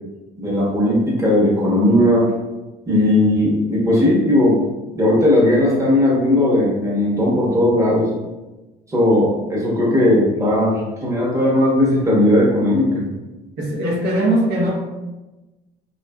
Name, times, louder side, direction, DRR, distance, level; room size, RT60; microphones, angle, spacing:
voice 1, 0.4-2.3 2.9-4.6 4.9-8.1 8.9-13.0, left 1 dB, 20° right, -5 dB, 0.8 m, -17 dB
voice 2, 13.6-14.7, right 1 dB, 80° right, -4 dB, 0.8 m, -19 dB
2.7 x 2.4 x 2.2 m, 1.1 s
cardioid pair, 110°, 17 cm